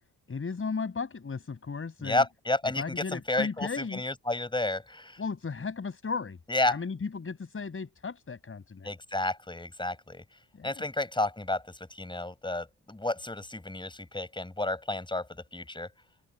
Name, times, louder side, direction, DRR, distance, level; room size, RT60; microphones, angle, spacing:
voice 1, 0.3-2.2 2.8-4.0 5.2-6.4 6.6-8.9 10.5-10.8, left 5 dB, 35° left, 6.0 m, -35 dB
voice 2, 2.0-5.2 6.5-6.8 8.8-10.2 10.6-15.9, left 2 dB, 15° left, 5.5 m, -31 dB
cardioid pair, 105°, 36 cm